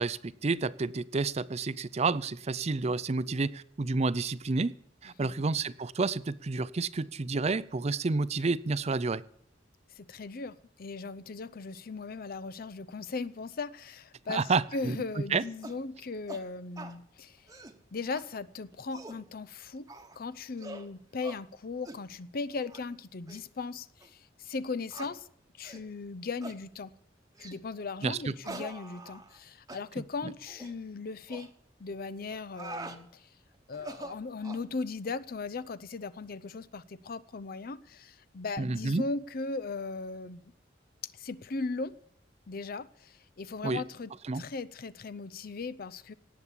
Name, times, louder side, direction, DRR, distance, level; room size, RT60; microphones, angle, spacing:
voice 1, 0.0-4.7 5.0-9.2 14.3-15.4 28.0-28.3 38.6-39.0 43.6-43.8 44.3-44.4, right 3 dB, 35° right, 0.5 m, -30 dB
voice 2, 10.0-17.4 17.9-19.9 20.2-25.3 25.6-26.9 27.4-31.5 31.8-33.3 33.7-40.5 41.1-41.9 42.5-46.1, left 4 dB, 50° left, 0.6 m, -38 dB
sound 1, 15.6-15.8 16.3-16.4 16.8-17.0 17.4-17.8 18.1-18.2 18.7-19.2 19.9-20.2 20.6-20.9 21.2-21.4 21.8-22.0 22.6-22.8 23.3-23.4 24.0-24.1 24.9-25.1 25.6-25.9 26.4-26.6 27.4-27.6 28.4-29.4 29.7-29.8 30.5-30.7 31.3-31.5 32.3-33.0 33.7-34.7, right 2 dB, 20° right, 1.1 m, -44 dB
18.0 x 7.2 x 8.3 m
head